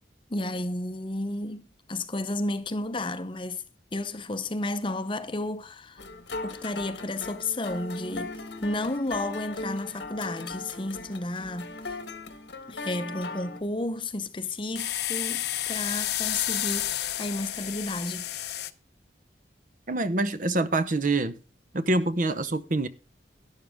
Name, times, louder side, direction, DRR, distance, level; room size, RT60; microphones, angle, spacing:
voice 1, 0.3-3.6 3.9-6.0 6.4-12.0 12.7-18.6, left 2 dB, 30° left, 0.7 m, -32 dB
sound 1, 6.0-13.6, left 3 dB, 75° left, 1.4 m, -38 dB
sound 2, 14.8-18.7, left 12 dB, 60° left, 0.7 m, -30 dB
voice 2, 19.9-21.4 21.7-22.9, right 2 dB, 45° right, 0.9 m, -25 dB
12.0 x 10.5 x 3.6 m
head